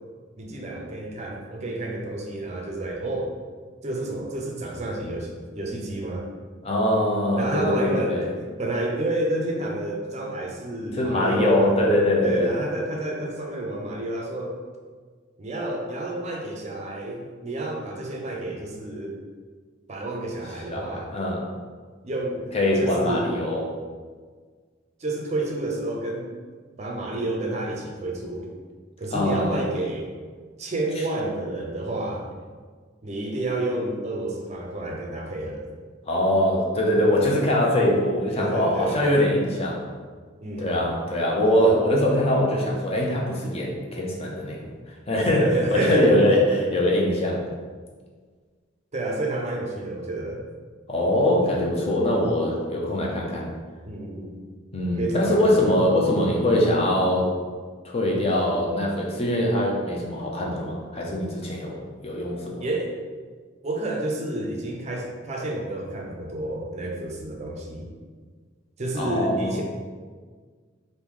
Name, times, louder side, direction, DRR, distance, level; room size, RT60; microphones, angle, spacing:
voice 1, 0.4-3.3 3.8-6.3 7.4-11.7 12.2-14.6 15.4-19.2 19.9-21.1 22.0-23.3 25.0-26.3 26.8-28.5 29.0-30.1 30.6-32.3 33.0-35.7 38.4-39.0 40.4-40.7 45.3-46.2 48.9-50.4 53.8-54.3 55.0-55.7 62.6-62.9 63.6-67.9 68.8-69.6, right 1 dB, 35° right, -1 dB, 0.5 m, -30 dB
voice 2, 6.6-8.3 10.9-12.5 20.7-21.4 22.5-23.6 29.1-29.6 36.1-39.8 40.6-44.7 45.1-47.4 50.9-53.5 54.7-57.3 57.8-61.7 62.0-62.6 69.0-69.6, left 1 dB, 30° left, -2 dB, 0.6 m, -22 dB
3.1 x 2.6 x 3.6 m, 1.5 s
head